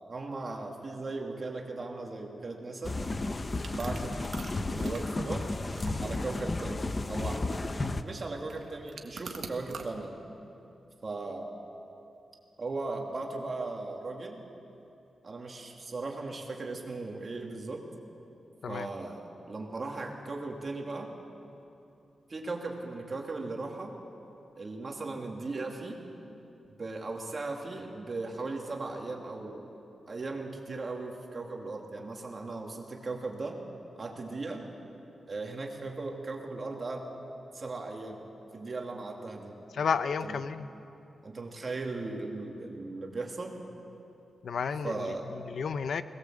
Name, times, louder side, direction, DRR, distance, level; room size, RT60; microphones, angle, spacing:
voice 1, 0.1-3.0 3.7-4.2 4.7-5.5 6.0-10.1 11.0-11.6 12.6-14.4 15.2-17.8 18.7-21.1 22.3-23.9 24.6-26.0 26.7-29.7 30.1-33.6 34.0-34.7 35.3-37.1 37.5-38.2 38.5-39.6 40.2-40.4 41.2-43.6 44.8-45.3, right 3 dB, 35° right, 0 dB, 2.7 m, -37 dB
sound 1, 2.8-8.0, left 2 dB, 30° left, 0.8 m, -33 dB
sound 2, 3.6-9.9, right 5 dB, 65° right, 1.8 m, -46 dB
voice 2, 39.7-40.7 44.4-46.0, left 6 dB, 70° left, 11 dB, 0.7 m, -32 dB
21.5 x 20.0 x 7.8 m, 2.8 s
wide cardioid pair, 135°, 0 cm